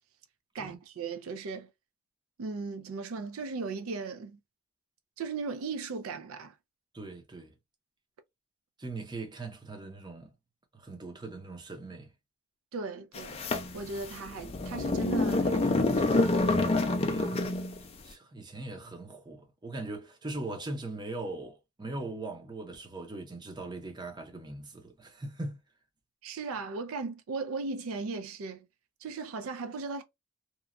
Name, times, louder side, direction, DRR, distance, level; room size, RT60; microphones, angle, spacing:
voice 1, 0.5-1.7 2.4-4.4 5.2-6.5 12.7-13.4 13.7-16.5 17.2-17.4 26.2-28.7 29.0-30.0, right 4 dB, 80° right, 0.4 m, -37 dB
voice 2, 6.9-7.5 8.8-10.3 10.7-12.1 17.0-17.5 18.0-25.6, right 2 dB, 20° right, 0.6 m, -40 dB
sound 1, 13.1-17.8, left 2 dB, 30° left, 0.4 m, -27 dB
2.9 x 2.2 x 2.4 m
head